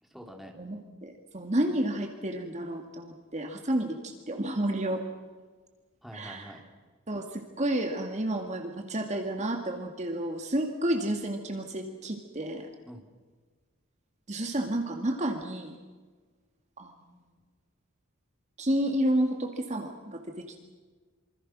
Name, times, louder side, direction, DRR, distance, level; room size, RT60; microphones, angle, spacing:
voice 1, 0.0-0.5 6.0-6.6 12.9-13.1, equal, ahead, 1 dB, 3.4 m, -46 dB
voice 2, 0.6-5.0 6.1-6.5 7.1-12.7 14.3-15.8 16.8-16.9 18.6-20.6, right 1 dB, 35° right, 4 dB, 2.1 m, -31 dB
27.0 x 25.5 x 6.3 m, 1.4 s
head